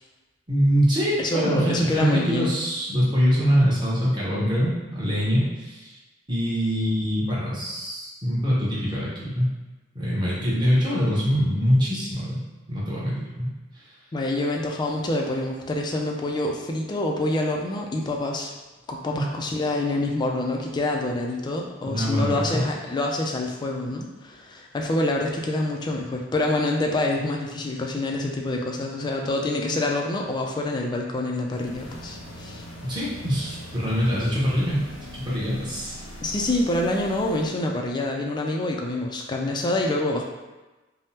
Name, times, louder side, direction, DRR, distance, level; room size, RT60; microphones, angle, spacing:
voice 1, 0.5-5.9 6.3-9.5 9.9-12.4 12.7-13.5 19.1-19.2 21.8-22.7 32.8-34.8 35.1-36.0, equal, 25° right, -7 dB, 0.9 m, -24 dB
voice 2, 1.2-2.5 14.1-18.5 18.9-32.6 36.2-40.2, left 2 dB, 25° left, 1 dB, 0.3 m, -26 dB
sound 1, 31.5-37.6, left 1 dB, 90° left, 0.7 m, -41 dB
3.4 x 2.0 x 2.8 m, 1.2 s
head